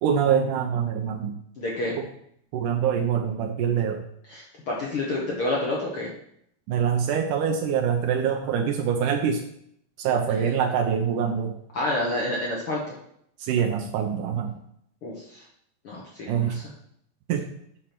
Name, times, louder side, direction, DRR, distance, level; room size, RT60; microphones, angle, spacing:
voice 1, 0.0-1.4 2.0-2.1 2.5-4.0 6.7-9.5 10.0-11.5 13.4-14.6 16.3-16.6 17.3-17.5, right 7 dB, 75° right, 4 dB, 2.0 m, -24 dB
voice 2, 1.6-2.0 4.3-6.1 11.7-12.9 15.0-15.4 15.8-16.6, left 2 dB, 60° left, -4 dB, 1.5 m, -29 dB
8.7 x 4.4 x 5.9 m, 0.70 s
omnidirectional pair, 4.1 m